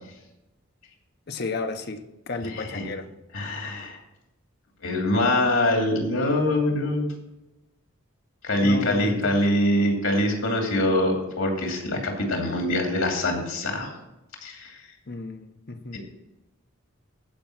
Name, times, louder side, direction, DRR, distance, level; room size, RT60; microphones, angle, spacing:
voice 1, 1.3-3.1 8.6-9.4 15.1-16.0, left 3 dB, 50° left, 7 dB, 0.9 m, -33 dB
voice 2, 2.5-2.8 3.3-4.0 4.8-7.1 8.4-13.9 14.4-14.8 15.9-16.0, left 1 dB, 85° left, 1 dB, 2.6 m, -24 dB
14.5 x 5.3 x 6.0 m, 0.96 s
head